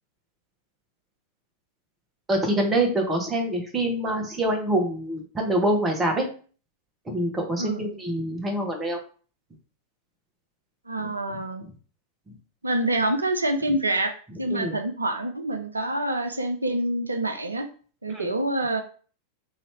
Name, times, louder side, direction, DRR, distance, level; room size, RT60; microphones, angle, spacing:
voice 1, 2.3-6.2 7.1-9.0 11.0-11.1 14.5-14.8 18.1-18.3, right 1 dB, 15° right, 2 dB, 1.1 m, -25 dB
voice 2, 7.6-7.9 10.9-11.6 12.6-14.1 14.4-17.7 18.0-18.8, right 1 dB, 80° right, 7 dB, 0.4 m, -26 dB
3.1 x 2.7 x 4.5 m, 0.41 s
figure-of-eight pair, 90°, 0 cm